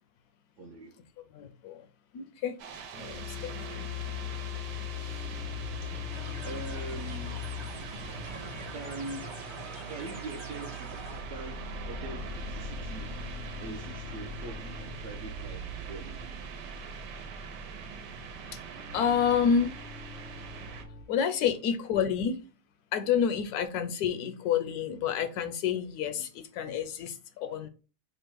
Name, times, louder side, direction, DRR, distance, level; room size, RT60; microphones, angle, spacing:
voice 1, 0.6-1.0 5.7-6.0 6.4-7.6 8.7-9.4 9.9-10.9 11.3-13.2 13.6-16.2, right 2 dB, 65° right, 0.8 m, -43 dB
voice 2, 1.3-1.9 2.1-2.6 3.0-3.9 5.0-5.3 18.5-18.6 18.9-19.8 21.1-22.4 22.9-27.7, left 7 dB, 75° left, 1.0 m, -29 dB
sound 1, 2.6-20.8, right 6 dB, 85° right, 1.4 m, -44 dB
sound 2, 3.1-21.0, left 4 dB, 55° left, 0.6 m, -41 dB
sound 3, 6.1-11.2, right 1 dB, 50° right, 0.3 m, -45 dB
5.0 x 2.1 x 4.5 m
omnidirectional pair, 1.8 m